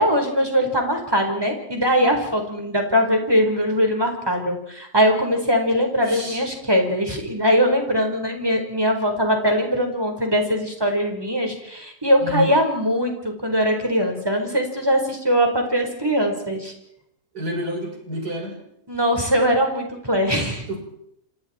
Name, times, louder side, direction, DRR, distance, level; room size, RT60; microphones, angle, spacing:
voice 1, 0.0-16.7 18.9-20.8, equal, 15° right, 3 dB, 4.5 m, -21 dB
voice 2, 6.0-6.5 12.2-12.5 17.3-18.6 20.7-20.8, equal, 75° right, 1 dB, 6.3 m, -29 dB
28.5 x 27.0 x 4.4 m, 0.74 s
omnidirectional pair, 1.7 m